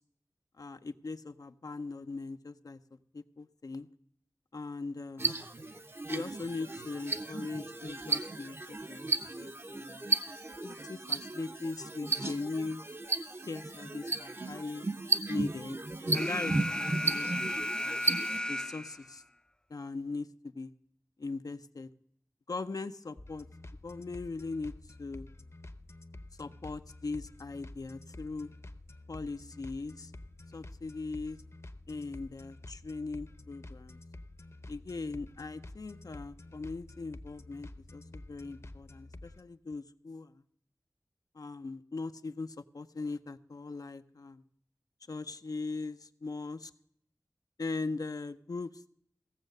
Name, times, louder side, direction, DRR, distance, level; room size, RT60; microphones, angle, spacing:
voice 1, 0.6-2.8 3.1-3.9 4.5-5.3 6.1-10.1 10.6-12.8 13.5-14.9 15.3-15.8 16.1-18.0 18.5-19.2 19.7-20.7 21.2-21.9 22.5-23.5 23.8-24.7 25.0-25.3 26.4-28.5 29.1-30.1 30.5-31.4 31.9-34.0 34.7-40.4 41.3-44.4 45.1-46.7 47.6-48.9, left 3 dB, 75° left, 10 dB, 0.6 m, -40 dB
sound 1, 5.2-18.4, right 3 dB, 40° right, 0.8 m, -34 dB
Alarm, 16.1-19.1, left 1 dB, 10° left, 0.4 m, -34 dB
sound 2, 23.2-39.4, left 2 dB, 50° left, 0.8 m, -49 dB
16.0 x 7.2 x 6.5 m, 0.68 s
wide cardioid pair, 50°, 6 cm